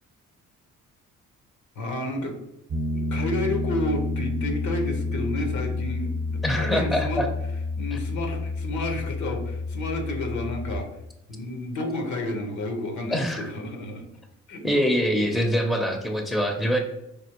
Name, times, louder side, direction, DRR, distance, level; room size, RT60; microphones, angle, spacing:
voice 1, 1.7-2.3 2.9-7.3 7.8-10.9 11.3-14.1 14.5-14.6, left 2 dB, 70° left, 5 dB, 1.0 m, -31 dB
Piano, 2.7-10.8, left 2 dB, 35° right, 0.8 m, -29 dB
voice 2, 6.4-7.3 13.1-13.5 14.6-16.8, equal, ahead, 4 dB, 0.6 m, -24 dB
5.1 x 2.8 x 2.9 m, 0.86 s
cardioid pair, 90°, 30 cm